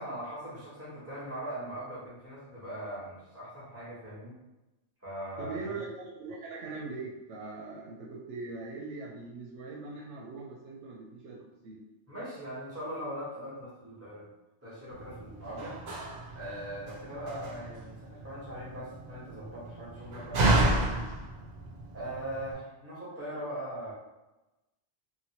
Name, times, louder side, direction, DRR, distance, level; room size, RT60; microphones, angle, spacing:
voice 1, 0.0-4.4 5.0-5.8 12.1-14.3 14.6-15.8 16.3-21.0 21.9-23.9, right 1 dB, 15° right, -8 dB, 1.0 m, -40 dB
voice 2, 5.4-11.4 11.6-11.8, right 3 dB, 85° right, -3 dB, 0.9 m, -41 dB
Slam, 14.9-22.5, right 2 dB, 60° right, 0.4 m, -32 dB
2.8 x 2.6 x 2.8 m, 1.0 s
omnidirectional pair, 1.2 m